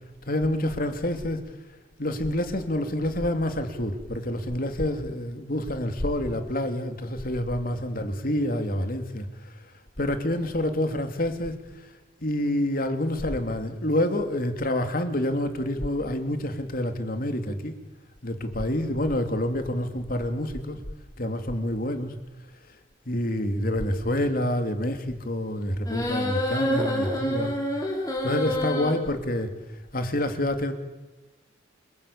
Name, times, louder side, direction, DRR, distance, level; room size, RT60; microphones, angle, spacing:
voice 1, 0.3-1.5 2.0-9.5 10.0-11.9 12.2-17.8 18.2-20.8 21.2-22.1 23.1-27.5 28.2-29.5 29.9-30.7, left 1 dB, 50° left, 7 dB, 2.9 m, -27 dB
sound 1, 25.9-28.9, equal, 20° left, 5.0 m, -27 dB
29.5 x 19.0 x 8.7 m, 1.2 s
head